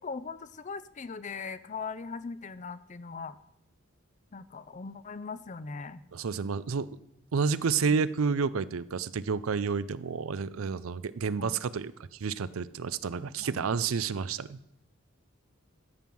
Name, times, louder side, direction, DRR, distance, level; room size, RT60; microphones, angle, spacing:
voice 1, 0.0-3.4 4.3-6.0 11.4-11.6 13.4-13.7, left 4 dB, 35° left, 15 dB, 0.5 m, -40 dB
voice 2, 6.1-6.9 7.3-14.6, right 5 dB, 85° right, 16 dB, 0.5 m, -30 dB
13.5 x 5.5 x 7.6 m, 0.82 s
head